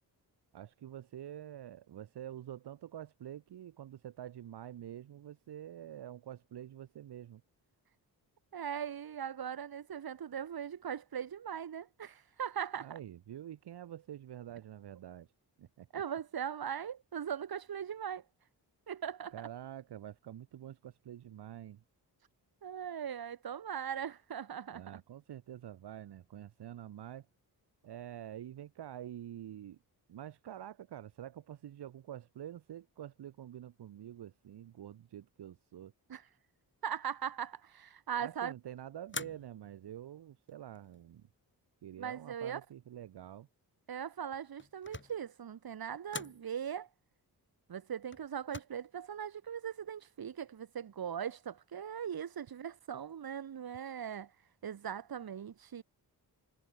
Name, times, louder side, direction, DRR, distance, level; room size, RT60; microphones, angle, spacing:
voice 1, 0.5-7.4 12.8-15.3 15.6-15.9 19.3-21.8 24.7-27.3 27.8-29.8 30.1-35.9 38.2-41.2 41.8-43.5, right 11 dB, 85° right, 1.4 m, -47 dB
voice 2, 8.5-13.0 15.9-18.2 18.9-19.5 22.6-25.0 36.1-36.2 36.8-38.5 42.0-42.6 43.9-46.9 47.7-54.3 54.6-55.8, right 8 dB, 65° right, 2.7 m, -40 dB
sound 1, 39.1-39.8 40.5-41.1 44.3-45.3 46.1-46.5 48.1-48.6, left 4 dB, 30° left, 5.1 m, -45 dB
wide cardioid pair, 115°, 39 cm